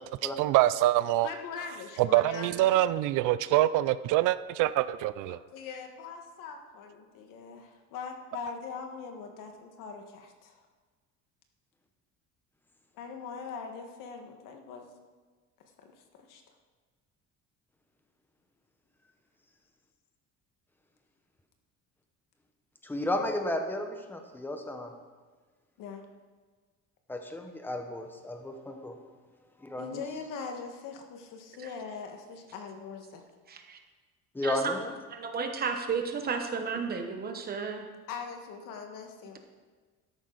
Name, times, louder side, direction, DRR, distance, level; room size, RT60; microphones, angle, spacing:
voice 1, 0.2-1.3 2.0-5.4, right 15 dB, 70° right, 16 dB, 0.5 m, -25 dB
voice 2, 1.2-2.9 5.3-10.6 12.9-14.9 15.8-16.4 25.8-26.0 29.8-33.2 36.7-37.2 38.1-39.4, left 5 dB, 75° left, 4 dB, 1.6 m, -42 dB
voice 3, 22.8-24.9 27.1-29.0 29.6-30.0 34.3-34.9, left 1 dB, 5° left, 4 dB, 0.9 m, -33 dB
voice 4, 33.5-33.8 34.4-34.7 35.1-37.9, right 5 dB, 30° right, 5 dB, 1.0 m, -33 dB
13.0 x 11.0 x 4.0 m, 1.4 s
cardioid pair, 175°, 32 cm